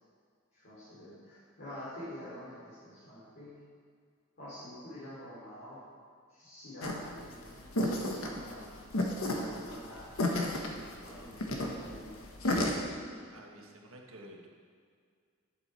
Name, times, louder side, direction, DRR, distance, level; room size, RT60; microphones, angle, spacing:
voice 1, 0.5-3.6 4.4-5.8 6.3-8.6 9.2-10.1 10.5-12.2, left 1 dB, 50° left, -11 dB, 3.0 m, -47 dB
sound 1, 6.8-12.7, left 1 dB, 85° left, 1.3 m, -32 dB
voice 2, 13.3-14.5, right 1 dB, 75° right, 1 dB, 1.3 m, -51 dB
11.0 x 7.4 x 4.5 m, 2.1 s
head